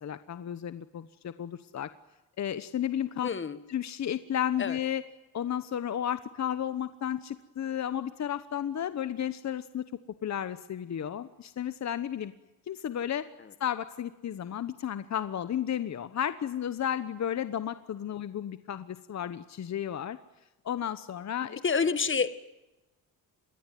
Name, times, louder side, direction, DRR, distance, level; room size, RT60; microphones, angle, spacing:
voice 1, 0.0-1.9 2.4-3.3 3.7-5.0 5.3-9.8 10.2-12.3 12.7-13.3 13.6-20.2 20.6-21.6, left 10 dB, 50° left, 12 dB, 1.1 m, -33 dB
voice 2, 3.2-3.6 4.6-4.8 21.6-22.3, left 5 dB, 35° left, 13 dB, 1.7 m, -27 dB
27.5 x 22.0 x 9.3 m, 1.0 s
cardioid pair, 125°, 36 cm